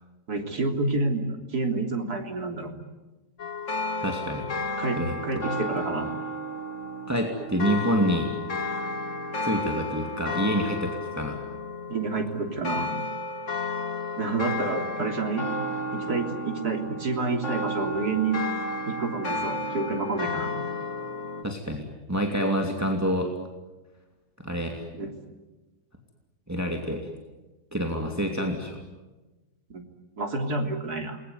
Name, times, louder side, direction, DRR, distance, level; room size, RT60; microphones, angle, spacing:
voice 1, 0.3-2.7 4.8-6.1 11.9-12.9 14.2-15.5 15.9-18.4 18.9-20.5 24.9-25.1 29.7-29.8 30.2-31.2, right 3 dB, 70° right, 3 dB, 3.9 m, -29 dB
sound 1, 3.4-21.4, left 2 dB, 50° left, 2.6 m, -32 dB
voice 2, 4.0-4.5 5.0-5.4 7.1-8.3 9.4-11.4 21.4-23.3 24.4-24.8 26.5-27.0 27.7-28.8, equal, 10° right, 2 dB, 2.6 m, -27 dB
28.5 x 22.0 x 9.5 m, 1.2 s
omnidirectional pair, 1.7 m